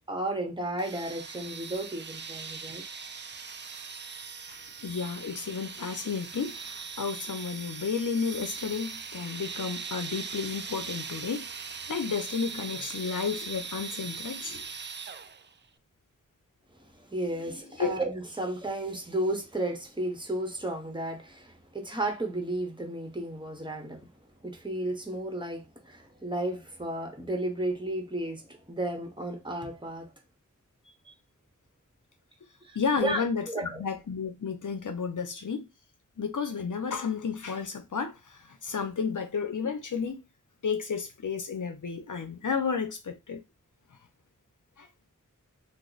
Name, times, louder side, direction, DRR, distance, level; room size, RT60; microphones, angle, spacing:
voice 1, 0.1-2.8 16.8-24.1 24.4-30.1 31.0-31.1 32.6-33.8, right 1 dB, 15° right, 1.0 m, -33 dB
sound 1, 0.8-15.5, right 5 dB, 35° right, 0.4 m, -40 dB
voice 2, 4.5-14.7 17.8-17.9 32.7-35.7 36.2-40.2 40.6-43.4 43.9-44.0 44.8-44.9, left 5 dB, 70° left, 0.6 m, -32 dB
2.9 x 2.0 x 3.9 m
wide cardioid pair, 40°, 32 cm